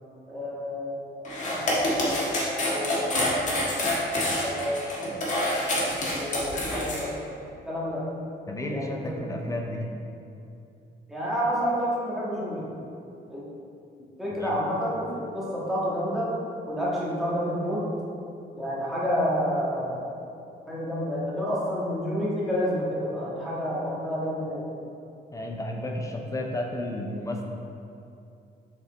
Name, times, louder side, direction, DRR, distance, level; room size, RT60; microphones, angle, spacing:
voice 1, 0.3-3.8 4.4-5.1 6.1-7.1 7.6-8.0 8.7-9.1 11.1-12.7 13.3-13.5 14.2-16.3 16.7-17.8 18.5-20.2 20.7-24.7, equal, ahead, -8 dB, 1.5 m, -29 dB
sound 1, 1.2-7.0, left 1 dB, 40° left, 1.6 m, -27 dB
voice 2, 8.5-9.9 14.4-14.6 25.3-27.4, left 1 dB, 15° left, 1 dB, 0.5 m, -32 dB
7.1 x 5.2 x 4.0 m, 2.6 s
cardioid pair, 170°, 19 cm